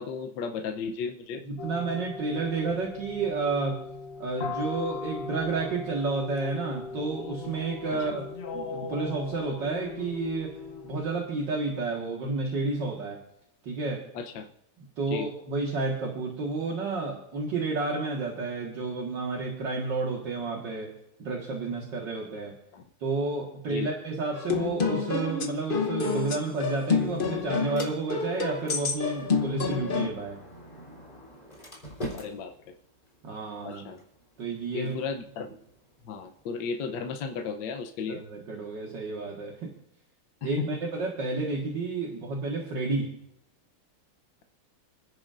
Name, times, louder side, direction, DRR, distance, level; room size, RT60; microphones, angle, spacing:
voice 1, 0.0-1.4 8.1-8.2 14.1-14.5 15.1-15.3 22.7-22.8 23.7-23.9 32.1-32.5 33.6-34.0 34.7-35.5 36.0-38.2 40.4-40.7, left 5 dB, 65° left, 4 dB, 1.4 m, -34 dB
voice 2, 1.4-3.8 4.2-10.6 10.8-13.2 13.6-14.1 14.8-20.9 21.2-22.6 23.0-30.4 33.2-33.9 34.4-35.0 38.1-39.7 40.4-43.1, right 3 dB, 60° right, -2 dB, 2.3 m, -31 dB
sound 1, 1.6-11.2, left 4 dB, 80° left, 0.5 m, -39 dB
sound 2, 24.3-30.1, left 5 dB, 45° left, 0.7 m, -28 dB
Sliding door, 26.4-36.4, equal, 20° left, 3.8 m, -46 dB
30.0 x 10.5 x 2.6 m, 0.82 s
omnidirectional pair, 2.3 m